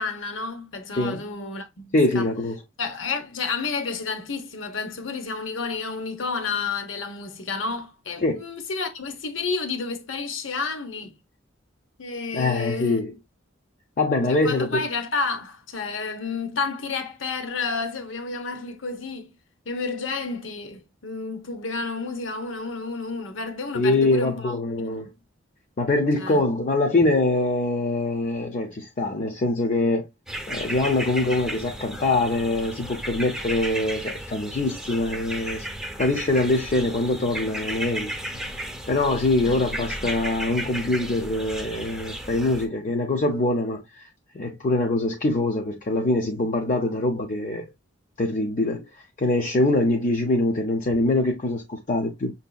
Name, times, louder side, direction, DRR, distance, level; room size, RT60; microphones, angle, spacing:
voice 1, 0.0-2.3 2.8-11.1 12.0-13.0 14.3-19.4 19.6-25.1 26.2-26.4 39.4-39.6, left 4 dB, 75° left, 0.9 m, -31 dB
voice 2, 1.9-2.6 8.2-8.4 12.3-13.1 14.0-14.8 23.7-25.1 25.8-30.1 30.5-35.7 36.0-38.1 38.4-38.6 38.9-44.1 44.3-47.6 48.2-48.8 49.2-52.3, left 2 dB, 40° left, 0.5 m, -23 dB
sound 1, 30.3-42.7, right 1 dB, 5° right, 0.6 m, -34 dB
5.9 x 2.7 x 2.3 m
head